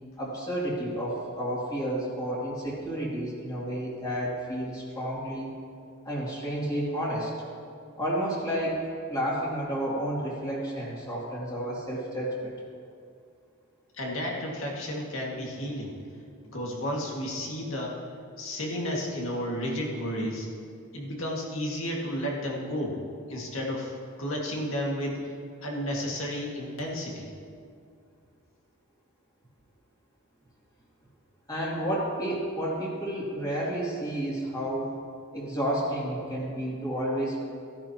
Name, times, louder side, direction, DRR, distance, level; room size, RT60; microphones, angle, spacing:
voice 1, 0.2-5.5 6.0-7.3 8.0-8.8 9.1-12.5 31.5-35.0 35.3-37.4, right 1 dB, 20° left, -6 dB, 2.6 m, -31 dB
voice 2, 13.9-16.0 16.5-18.0 18.4-20.5 20.9-23.0 23.3-25.3 25.6-27.3, equal, 75° left, -2 dB, 2.0 m, -32 dB
16.0 x 10.5 x 3.0 m, 2.3 s
head